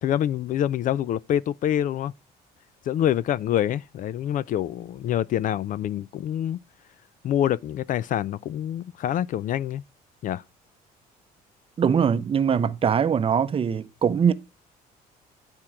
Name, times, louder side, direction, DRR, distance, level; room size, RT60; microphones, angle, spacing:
voice 1, 0.0-2.1 2.9-6.6 7.2-9.8 10.2-10.4, left 11 dB, 50° left, 0.4 m, -26 dB
voice 2, 11.8-14.3, right 7 dB, 35° right, 0.6 m, -22 dB
10.5 x 4.5 x 4.8 m
cardioid pair, 110°, 17 cm